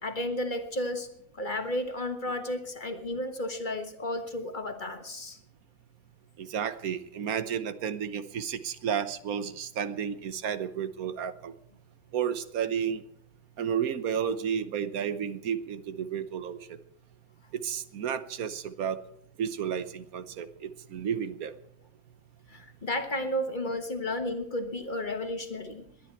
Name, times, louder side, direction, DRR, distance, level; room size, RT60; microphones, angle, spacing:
voice 1, 0.0-1.1 1.4-5.4 22.5-25.8, left 1 dB, 35° left, 7 dB, 1.4 m, -33 dB
voice 2, 6.4-11.5 12.1-13.0 13.6-16.8 17.6-19.0 19.4-21.5, right 8 dB, 85° right, 12 dB, 1.4 m, -32 dB
21.0 x 10.5 x 4.5 m, 0.72 s
omnidirectional pair, 1.5 m